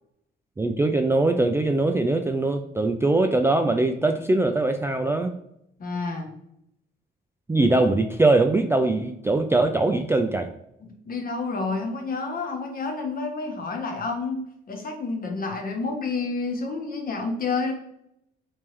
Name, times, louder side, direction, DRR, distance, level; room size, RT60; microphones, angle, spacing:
voice 1, 0.6-5.4 7.5-10.5, right 2 dB, 10° right, 5 dB, 0.3 m, -22 dB
voice 2, 5.8-6.3 10.8-17.7, left 4 dB, 45° left, 3 dB, 1.0 m, -29 dB
3.4 x 3.2 x 3.0 m, 0.78 s
cardioid pair, 90°, 20 cm